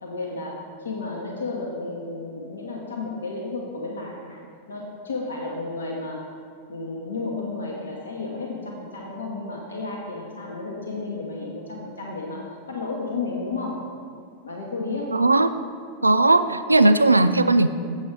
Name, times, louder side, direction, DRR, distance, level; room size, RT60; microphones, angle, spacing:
voice 1, 0.0-4.4 4.7-6.2 6.7-13.9 14.4-15.2, left 3 dB, 70° left, -1 dB, 1.0 m, -32 dB
voice 2, 15.1-15.5 16.0-17.7, right 2 dB, 80° right, 11 dB, 0.3 m, -17 dB
7.3 x 7.3 x 4.5 m, 2.3 s
figure-of-eight pair, 90°, 0 cm